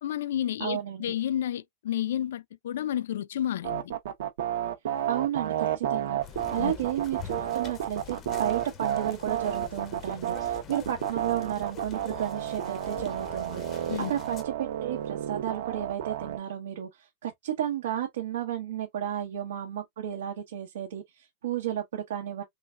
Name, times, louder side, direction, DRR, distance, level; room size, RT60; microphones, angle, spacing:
voice 1, 0.0-3.9 6.6-6.7 13.9-14.1, left 11 dB, 75° left, 0.3 m, -31 dB
voice 2, 0.6-1.1 5.1-6.2 6.5-22.4, right 10 dB, 85° right, 1.1 m, -33 dB
sound 1, 3.6-16.4, right 11 dB, 65° right, 0.9 m, -31 dB
sound 2, 6.2-14.4, left 7 dB, 20° left, 0.5 m, -45 dB
3.8 x 3.3 x 2.4 m
supercardioid pair, 180°, 0 cm